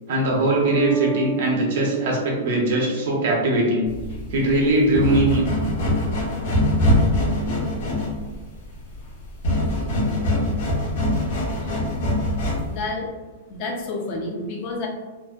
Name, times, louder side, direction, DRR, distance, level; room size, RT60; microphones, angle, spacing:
voice 1, 0.1-3.9 4.3-5.5, right 1 dB, 65° right, -2 dB, 0.7 m, -21 dB
Bass guitar, 0.7-4.2, right 9 dB, 25° right, 0.3 m, -31 dB
sound 1, 3.9-12.8, left 1 dB, 60° left, 0.9 m, -23 dB
voice 2, 12.7-13.1 13.5-14.9, left 2 dB, 40° left, 1 dB, 0.5 m, -29 dB
2.6 x 2.1 x 2.4 m, 1.3 s
supercardioid pair, 155°, 0 cm